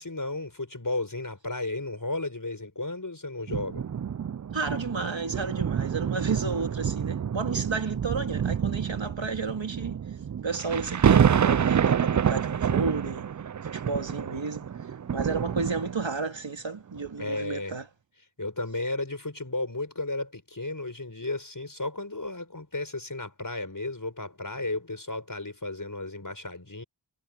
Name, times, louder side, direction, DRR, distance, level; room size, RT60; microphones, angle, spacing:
voice 1, 0.0-3.8 17.2-17.7 18.4-26.8, left 2 dB, 40° left, 6.0 m, -33 dB
sound 1, 3.5-16.3 17.0-17.1, right 8 dB, 40° right, 0.4 m, -27 dB
voice 2, 4.5-10.0 10.4-13.3 13.6-14.7 15.1-17.9, right 4 dB, 65° right, 2.5 m, -32 dB
wide cardioid pair, 40°, 48 cm